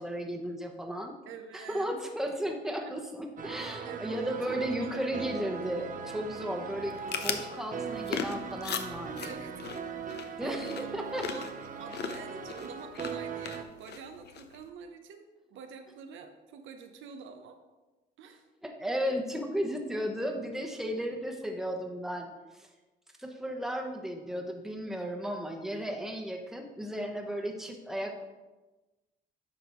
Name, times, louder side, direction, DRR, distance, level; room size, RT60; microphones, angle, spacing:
voice 1, 0.0-1.2 1.5-9.4 10.4-11.3 18.6-22.7 23.2-28.2, equal, ahead, 2 dB, 1.0 m, -35 dB
voice 2, 1.3-1.9 2.8-3.0 3.5-5.3 9.2-9.5 10.1-10.9 11.3-11.5 11.8-17.6 18.2-18.4, right 6 dB, 80° right, 6 dB, 0.7 m, -46 dB
sound 1, 3.4-13.6, right 6 dB, 40° right, 0.6 m, -40 dB
sound 2, 6.8-14.7, left 6 dB, 60° left, 0.6 m, -39 dB
9.5 x 5.4 x 3.0 m, 1.2 s
cardioid pair, 90°, 20 cm